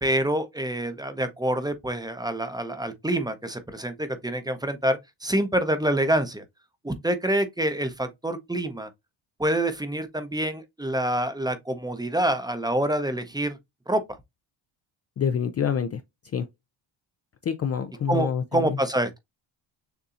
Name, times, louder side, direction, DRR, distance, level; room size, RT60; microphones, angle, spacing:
voice 1, 0.0-6.4 6.8-8.9 9.4-13.6 13.9-14.2 18.1-19.2, right 1 dB, 10° right, 0.7 m, -26 dB
voice 2, 15.2-16.0 16.3-16.5 17.4-18.8, left 7 dB, 30° left, 0.5 m, -26 dB
6.8 x 2.7 x 2.5 m
cardioid pair, 90°, 49 cm